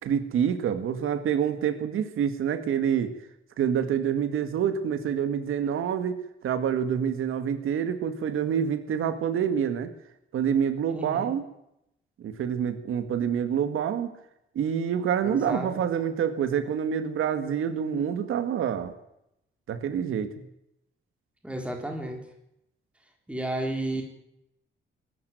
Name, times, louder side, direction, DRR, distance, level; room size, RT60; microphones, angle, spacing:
voice 1, 0.0-3.1 3.6-6.2 6.4-9.9 10.3-11.4 12.2-14.1 14.6-18.9 19.7-20.5, right 8 dB, 85° right, 10 dB, 2.0 m, -27 dB
voice 2, 10.9-11.3 15.2-15.8 21.4-22.2 23.3-24.0, right 1 dB, 5° right, 2 dB, 4.0 m, -32 dB
22.0 x 13.5 x 9.4 m, 0.81 s
wide cardioid pair, 175°, 21 cm